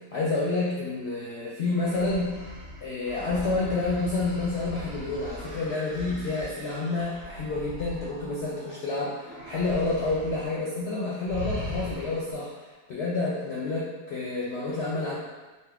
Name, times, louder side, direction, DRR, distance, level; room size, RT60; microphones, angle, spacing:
voice 1, 0.1-2.4 2.8-12.6 12.9-15.2, left 3 dB, 60° left, -6 dB, 0.7 m, -29 dB
sound 1, 1.6-8.8 9.2-10.5 10.7-10.9 11.3-12.4, left 1 dB, 45° right, 1.4 m, -40 dB
4.1 x 2.0 x 3.5 m, 1.3 s
omnidirectional pair, 1.6 m